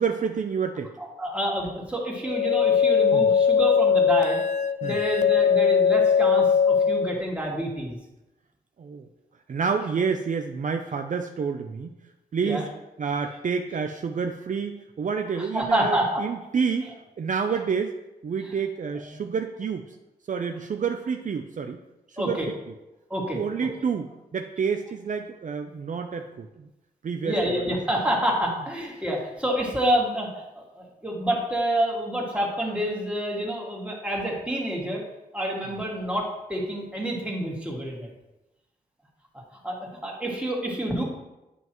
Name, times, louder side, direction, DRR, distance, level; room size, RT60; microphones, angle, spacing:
voice 1, 0.0-0.9 3.1-3.2 4.8-5.0 8.8-9.1 9.5-11.9 12.3-12.7 13.0-16.9 17.2-18.0 18.2-19.8 20.3-21.8 22.1-22.4 23.3-26.7 27.0-27.3, right 6 dB, 55° right, 5 dB, 0.5 m, -28 dB
voice 2, 1.0-4.4 4.8-8.0 12.4-12.7 13.2-13.4 15.3-16.2 16.8-16.9 18.4-18.6 18.9-19.2 22.2-22.5 23.1-23.7 27.2-35.0 35.3-38.1 39.6-41.0, right 1 dB, 10° right, -3 dB, 2.1 m, -28 dB
sound 1, 2.2-7.2, left 6 dB, 50° left, 0.4 m, -20 dB
9.6 x 5.5 x 3.0 m, 0.98 s
cardioid pair, 80°, 16 cm